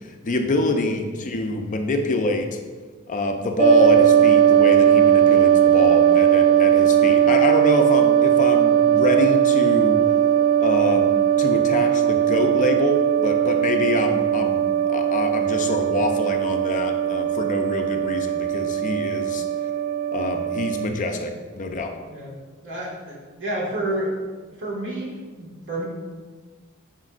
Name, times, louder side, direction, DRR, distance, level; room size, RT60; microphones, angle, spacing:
voice 1, 0.0-2.6 3.1-10.0 10.6-11.1 11.4-19.4 20.1-21.9, left 2 dB, 35° left, 4 dB, 0.5 m, -25 dB
sound 1, 3.6-20.9, right 9 dB, 30° right, 0.4 m, -18 dB
voice 2, 22.6-24.1 24.6-25.8, right 1 dB, 60° right, -4 dB, 1.8 m, -30 dB
10.0 x 4.3 x 2.4 m, 1.4 s
head